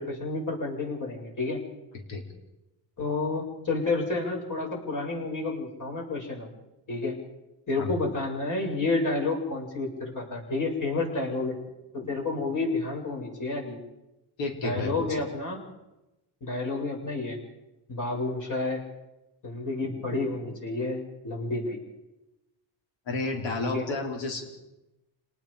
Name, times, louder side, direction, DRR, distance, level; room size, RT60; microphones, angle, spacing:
voice 1, 0.0-1.6 3.0-6.5 6.9-7.2 7.7-11.6 11.9-13.8 14.6-15.6 16.4-17.4 17.9-18.8 19.4-21.8 23.6-23.8, left 3 dB, 45° left, -1 dB, 7.7 m, -30 dB
voice 2, 14.4-15.2 23.1-24.4, left 3 dB, 75° left, 1 dB, 4.6 m, -31 dB
29.0 x 19.0 x 5.2 m, 1.0 s
cardioid pair, 115°, 45 cm